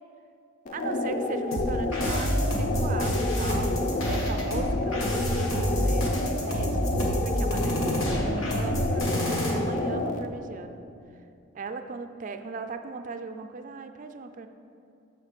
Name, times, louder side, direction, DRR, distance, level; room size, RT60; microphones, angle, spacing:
sound 1, 0.7-10.3, left 2 dB, 40° left, 0.4 m, -30 dB
voice 1, 0.7-6.9 7.2-10.8 11.5-14.5, right 4 dB, 40° right, 8 dB, 0.4 m, -38 dB
sound 2, 1.5-9.5, equal, 90° left, 1.4 m, -28 dB
6.6 x 4.4 x 6.5 m, 2.6 s
head